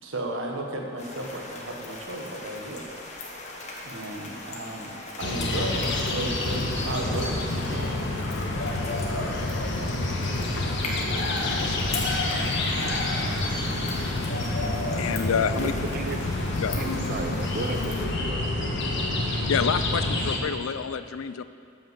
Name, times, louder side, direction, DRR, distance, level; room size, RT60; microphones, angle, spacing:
voice 1, 0.0-2.8 3.8-7.9, right 1 dB, 65° right, 0 dB, 1.5 m, -34 dB
sound 1, 1.0-18.1, left 2 dB, 35° left, 1.4 m, -40 dB
sound 2, 5.2-20.4, left 2 dB, 60° left, 1.4 m, -28 dB
voice 2, 11.5-11.8 15.0-15.7 16.6-16.8 19.2-21.4, left 7 dB, 80° left, 13 dB, 0.4 m, -28 dB
voice 3, 15.5-16.2 16.8-18.4, right 3 dB, 45° right, 7 dB, 0.6 m, -35 dB
13.5 x 5.9 x 6.8 m, 2.4 s
head